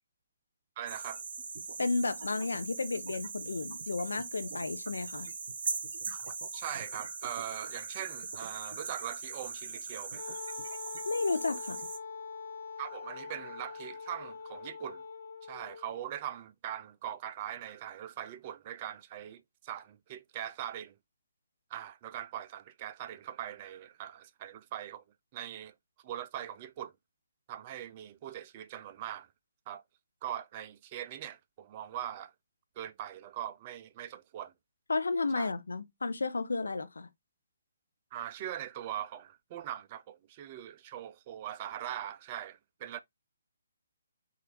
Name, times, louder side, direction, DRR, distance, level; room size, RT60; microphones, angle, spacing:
voice 1, 0.8-1.2 6.1-10.4 12.8-15.0 15.4-21.0 21.7-25.0 25.3-25.7 26.0-26.9 27.5-29.3 29.7-29.8 30.2-32.3 32.8-34.5 35.4-35.5 38.1-43.0, right 11 dB, 30° right, 0.3 m, -41 dB
sound 1, 0.9-12.0, right 4 dB, 50° right, 0.8 m, -40 dB
voice 2, 1.8-5.3 11.0-11.8 34.9-37.1, left 3 dB, 70° left, 0.6 m, -32 dB
Wind instrument woodwind instrument, 10.2-16.1, left 5 dB, 50° left, 0.9 m, -44 dB
5.9 x 2.4 x 2.9 m
figure-of-eight pair, 135°, 0 cm